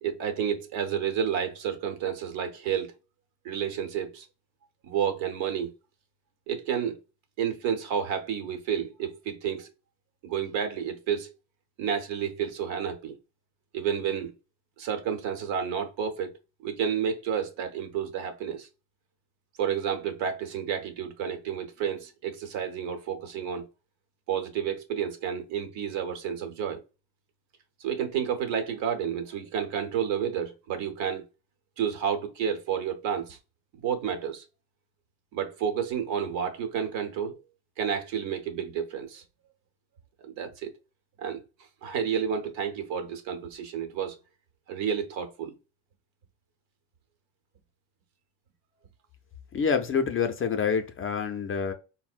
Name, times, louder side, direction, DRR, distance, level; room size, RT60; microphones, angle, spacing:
voice 1, 0.0-2.9 3.4-4.3 4.8-5.7 6.5-7.0 7.4-9.7 10.2-11.3 11.8-13.2 13.7-14.3 14.8-16.3 16.6-18.7 19.6-23.6 24.3-26.8 27.8-31.2 31.8-33.4 33.8-34.4 35.3-37.4 37.8-39.2 40.2-40.7 41.2-41.4 41.8-44.2 44.7-45.5, right 8 dB, 85° right, 0.9 m, -30 dB
voice 2, 49.5-51.7, left 6 dB, 30° left, 0.4 m, -27 dB
4.3 x 2.1 x 2.3 m
cardioid pair, 135°, 44 cm